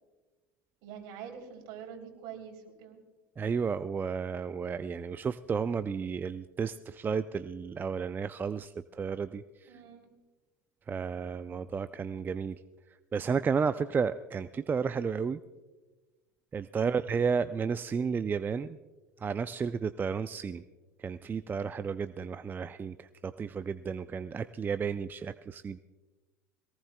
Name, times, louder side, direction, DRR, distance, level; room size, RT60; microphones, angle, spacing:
voice 1, 0.8-3.0 9.6-10.1 16.7-17.0, right 7 dB, 60° right, 3 dB, 3.3 m, -45 dB
voice 2, 3.4-9.8 10.9-12.6 13.1-15.4 16.5-18.8 19.2-20.6 21.0-25.8, right 6 dB, 20° right, 13 dB, 0.4 m, -32 dB
22.0 x 18.5 x 2.2 m, 1.2 s
hypercardioid pair, 80°, 9 cm